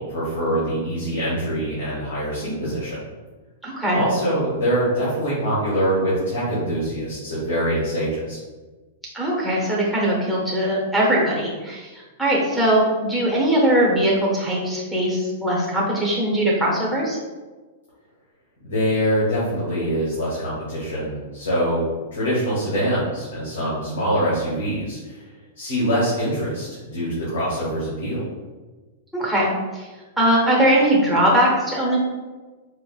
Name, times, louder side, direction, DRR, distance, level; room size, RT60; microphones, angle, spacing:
voice 1, 0.0-3.0 3.9-8.4 18.6-21.8 22.1-25.3 25.6-28.2, equal, 80° left, -8 dB, 1.2 m, -24 dB
voice 2, 3.6-4.0 9.1-17.2 29.1-29.9 30.2-32.0, right 1 dB, ahead, -5 dB, 0.8 m, -20 dB
4.6 x 2.0 x 2.3 m, 1.3 s
hypercardioid pair, 130°, 0 cm